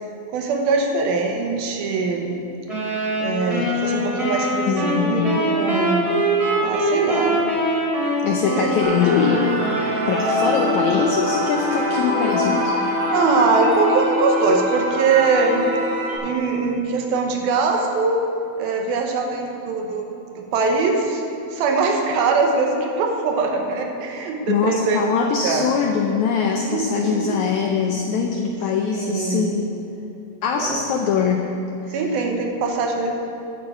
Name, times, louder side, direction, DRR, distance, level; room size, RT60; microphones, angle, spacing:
voice 1, 0.3-2.4 3.2-6.0 6.6-7.5 8.6-8.7 13.1-15.7 16.2-18.2 18.6-20.0 20.3-21.2 21.5-25.7 26.6-27.4 28.9-29.5 30.6-30.8 31.9-33.2, right 4 dB, 85° right, 2 dB, 2.9 m, -22 dB
sound 1, 2.7-10.7, equal, 10° right, 2.0 m, -23 dB
voice 2, 4.7-5.4 8.2-9.5 10.1-12.7 24.5-29.7 30.4-31.5 31.9-32.0, left 6 dB, 90° left, 2 dB, 1.6 m, -22 dB
sound 2, 8.8-16.2, equal, 55° right, 4.1 m, -24 dB
11.5 x 7.3 x 6.7 m, 2.9 s
omnidirectional pair, 4.2 m